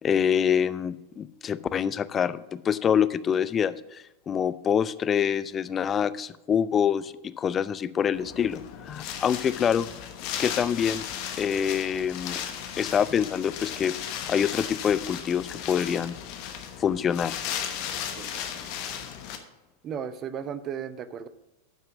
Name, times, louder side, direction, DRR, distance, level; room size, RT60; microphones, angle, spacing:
voice 1, 0.0-9.9 10.4-11.1 11.4-12.4 12.8-13.9 14.3-16.2 16.8-17.4, left 8 dB, 25° left, 15 dB, 0.4 m, -26 dB
Wind, 8.1-19.4, left 9 dB, 45° left, 1.0 m, -36 dB
voice 2, 19.8-21.3, right 8 dB, 30° right, 13 dB, 0.6 m, -35 dB
9.2 x 5.6 x 6.0 m, 0.94 s
figure-of-eight pair, 90°, 0 cm